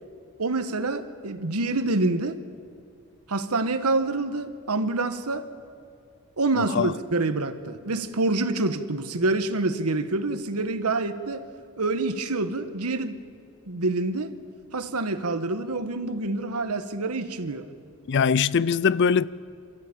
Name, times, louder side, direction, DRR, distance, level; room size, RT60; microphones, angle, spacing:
voice 1, 0.4-2.4 3.3-5.5 6.4-11.4 11.8-13.2 13.7-14.3 14.7-17.7, right 2 dB, 90° right, 1.3 m, -27 dB
voice 2, 6.6-6.9 18.1-19.3, left 6 dB, 55° left, 0.4 m, -22 dB
27.5 x 13.5 x 8.6 m
head